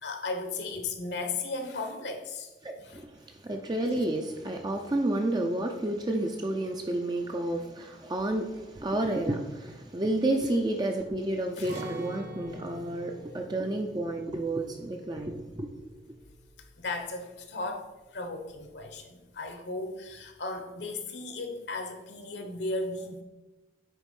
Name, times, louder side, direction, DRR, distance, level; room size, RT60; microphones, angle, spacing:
voice 1, 0.0-2.5 2.8-3.0 11.6-11.7 16.8-17.9 18.1-23.2, left 3 dB, 65° left, 1.1 m, -35 dB
voice 2, 2.6-15.7, right 1 dB, 20° right, 0.5 m, -30 dB
Acoustic guitar, 11.6-17.5 17.8-18.0 18.5-19.0, right 1 dB, 40° right, 1.0 m, -46 dB
9.1 x 3.5 x 5.4 m
head